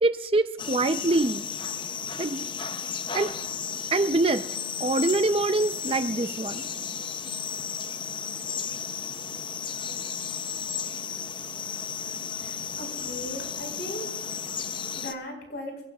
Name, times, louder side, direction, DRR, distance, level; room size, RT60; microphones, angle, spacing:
voice 1, 0.0-1.4 2.2-2.4 3.1-3.3 3.9-4.4 4.8-6.7, right 2 dB, 30° right, 10 dB, 0.5 m, -24 dB
sound 1, 0.6-15.1, left 7 dB, 25° left, 0.6 m, -34 dB
voice 2, 12.4-14.1 14.9-15.7, left 1 dB, 65° left, 2 dB, 4.9 m, -38 dB
27.5 x 16.5 x 2.4 m, 0.91 s
head